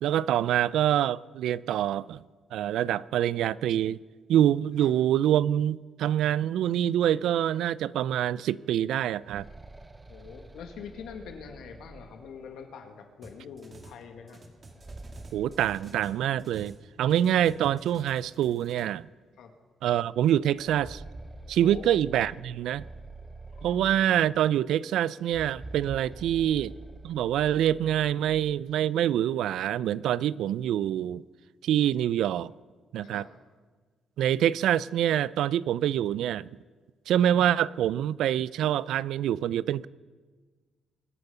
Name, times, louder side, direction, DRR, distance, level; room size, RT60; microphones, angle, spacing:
voice 1, 0.0-2.2 2.5-4.0 4.3-9.5 15.3-19.1 19.8-21.0 21.5-22.8 23.6-26.7 27.0-31.2 31.6-32.5 32.9-33.3 34.2-36.5 37.1-39.9, right 11 dB, 80° right, 0.3 m, -25 dB
sound 1, 9.1-12.8 14.5-16.7 17.0-17.1 18.0-18.1 18.6-18.7 20.4-24.5 25.2-28.6, right 2 dB, 20° right, 0.8 m, -47 dB
voice 2, 10.1-14.4 19.4-19.5 21.6-22.4 23.5-23.8 26.4-26.5 33.0-33.3, left 6 dB, 80° left, 1.8 m, -44 dB
sound 2, 13.2-14.0 14.3-16.8 17.1-18.8, right 2 dB, 40° right, 2.1 m, -51 dB
23.5 x 8.2 x 5.6 m
cardioid pair, 90°, 0 cm